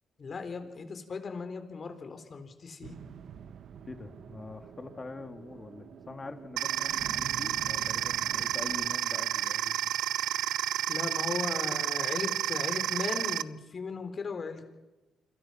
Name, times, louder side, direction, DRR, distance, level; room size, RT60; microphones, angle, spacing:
voice 1, 0.2-2.9 10.9-14.7, left 4 dB, 40° left, 8 dB, 4.4 m, -37 dB
sound 1, 2.8-9.0, right 7 dB, 65° right, 1.5 m, -47 dB
voice 2, 3.8-9.7, left 3 dB, 25° left, 7 dB, 2.7 m, -44 dB
sound 2, 6.6-13.4, right 12 dB, 80° right, 0.7 m, -31 dB
28.0 x 26.0 x 6.0 m, 1.1 s
cardioid pair, 90°, 0 cm